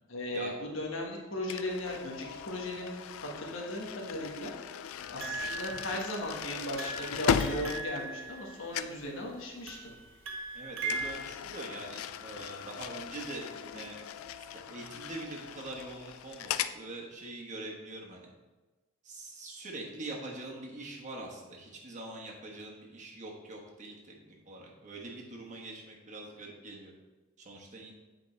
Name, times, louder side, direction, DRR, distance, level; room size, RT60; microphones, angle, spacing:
voice 1, 0.1-4.5 5.1-9.9, left 1 dB, 70° left, -1 dB, 1.4 m, -37 dB
sound 1, 1.5-8.5 8.7-9.1 10.9-16.8, left 8 dB, 85° left, 0.3 m, -37 dB
sound 2, 5.2-6.4 6.8-9.0 9.7-11.1, right 3 dB, 75° right, 1.0 m, -39 dB
voice 2, 10.5-14.0 14.4-18.3 19.0-26.9 27.4-27.9, right 2 dB, 35° right, -1 dB, 1.2 m, -44 dB
8.3 x 5.1 x 3.2 m, 1.2 s
head